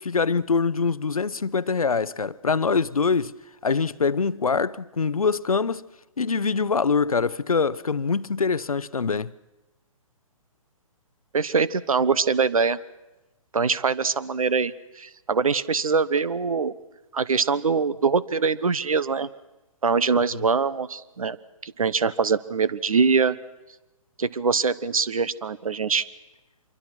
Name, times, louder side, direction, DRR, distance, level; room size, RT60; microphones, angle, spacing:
voice 1, 0.0-3.3 3.6-5.8 6.2-9.3, left 5 dB, 90° left, 0.7 m, -24 dB
voice 2, 11.3-12.8 13.5-16.7 17.1-19.3 19.8-21.4 21.6-23.4 24.2-26.1, right 5 dB, 80° right, 1.1 m, -23 dB
26.0 x 23.5 x 6.1 m
figure-of-eight pair, 135°, 18 cm